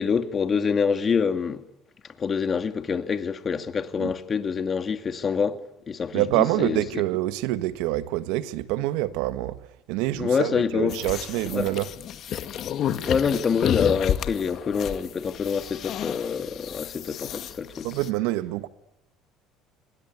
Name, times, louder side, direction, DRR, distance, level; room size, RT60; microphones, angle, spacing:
voice 1, 0.0-1.6 2.2-5.6 5.9-7.0 10.2-11.0 11.5-11.7 13.1-17.9, left 6 dB, 35° left, 2.4 m, -26 dB
voice 2, 6.1-9.6 9.9-11.9 17.8-18.7, right 16 dB, 80° right, 1.5 m, -26 dB
sound 1, 10.9-18.1, left 10 dB, 55° left, 2.0 m, -31 dB
27.5 x 20.5 x 9.7 m
supercardioid pair, 90°, 0 cm